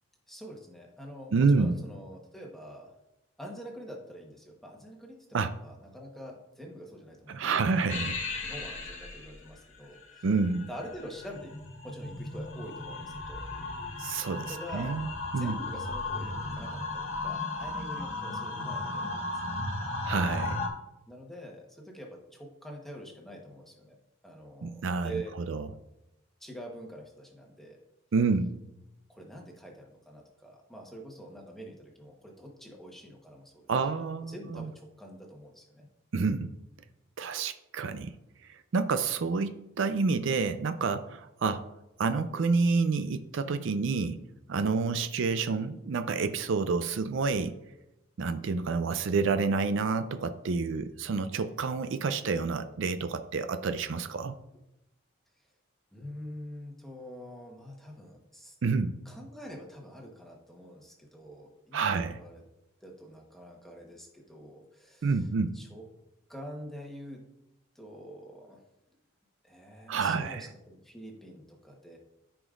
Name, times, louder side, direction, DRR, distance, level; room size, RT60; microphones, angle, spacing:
voice 1, 0.3-2.9 3.4-7.9 8.4-10.3 10.7-11.6 11.8-13.5 14.5-14.9 15.4-19.6 20.6-20.7 21.1-24.0 24.2-25.4 26.4-27.8 29.1-35.9 55.9-58.6 59.0-62.4 62.8-65.3 65.5-65.8 66.3-67.3 67.7-68.6 69.4-72.0, equal, ahead, 0 dB, 1.1 m, -46 dB
voice 2, 1.3-1.8 5.3-5.5 7.3-8.2 10.2-10.7 14.0-15.6 20.0-20.6 24.6-25.1 25.5-25.6 28.1-28.6 33.7-34.7 36.1-36.5 37.2-38.1 38.5-41.6 42.0-44.2 44.5-47.5 48.2-54.4 58.6-59.0 61.7-62.2 65.0-65.6 69.9-70.5, right 4 dB, 60° right, 10 dB, 0.4 m, -28 dB
sound 1, 7.9-20.7, left 2 dB, 70° left, 1.5 m, -36 dB
13.5 x 5.1 x 2.5 m, 0.90 s
head